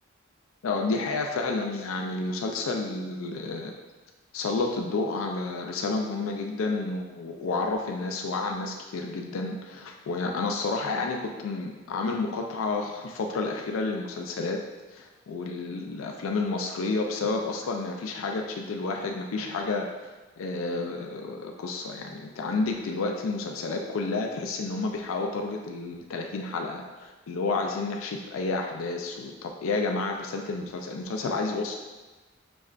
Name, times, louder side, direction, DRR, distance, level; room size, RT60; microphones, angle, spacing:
voice 1, 0.6-3.7 4.3-14.6 14.9-19.9 20.4-31.7, left 3 dB, 90° left, 2 dB, 0.4 m, -30 dB
5.1 x 3.2 x 2.4 m, 1.2 s
head